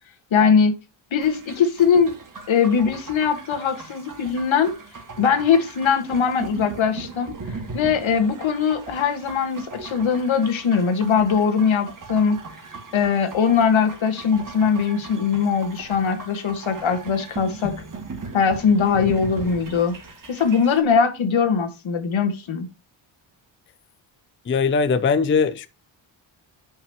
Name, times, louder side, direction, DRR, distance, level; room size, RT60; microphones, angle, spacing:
voice 1, 0.3-0.8 1.1-2.1 2.5-4.7 5.2-7.3 7.7-12.4 12.9-17.7 18.3-20.0 20.3-22.7, left 6 dB, 70° left, 1.6 m, -21 dB
sound 1, 1.2-20.8, right 3 dB, 40° right, 2.1 m, -38 dB
voice 2, 24.5-25.7, left 5 dB, 25° left, 0.4 m, -20 dB
10.5 x 5.5 x 2.9 m
wide cardioid pair, 160°, 49 cm